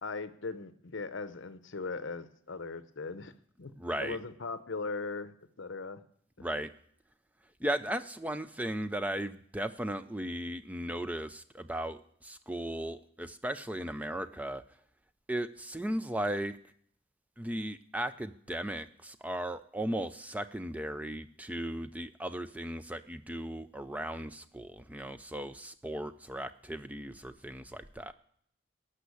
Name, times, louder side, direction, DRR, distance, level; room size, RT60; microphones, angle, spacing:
voice 1, 0.0-3.3 3.6-3.7 4.0-6.0, left 4 dB, 65° left, 12 dB, 0.7 m, -39 dB
voice 2, 3.8-4.2 6.4-6.7 7.6-14.6 15.3-16.6 17.4-28.1, right 1 dB, 5° right, 11 dB, 0.4 m, -36 dB
12.5 x 5.7 x 8.2 m, 0.65 s
head